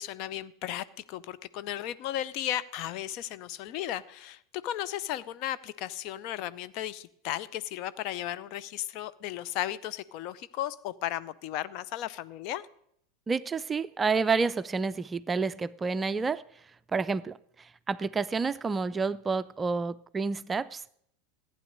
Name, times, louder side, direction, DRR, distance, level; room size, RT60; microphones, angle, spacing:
voice 1, 0.0-12.6, left 12 dB, 50° left, 15 dB, 0.6 m, -35 dB
voice 2, 13.3-16.4 16.9-20.9, right 4 dB, 20° right, 15 dB, 0.4 m, -29 dB
15.0 x 9.4 x 6.6 m, 0.69 s
figure-of-eight pair, 80°, 0 cm